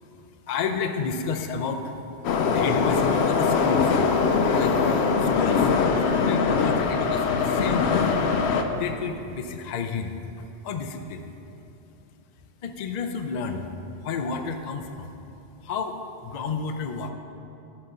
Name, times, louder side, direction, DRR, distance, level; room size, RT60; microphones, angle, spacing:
voice 1, 0.5-2.0 2.5-4.0 4.5-4.8 5.2-5.7 6.0-8.0 8.7-10.2 10.6-11.3 12.6-13.7 14.0-15.1 15.6-15.9 16.2-17.1, left 5 dB, 50° left, 5 dB, 0.6 m, -30 dB
Subway metro underground, 2.2-8.6, left 5 dB, 80° left, 0.9 m, -22 dB
9.7 x 4.1 x 6.6 m, 2.8 s
omnidirectional pair, 1.1 m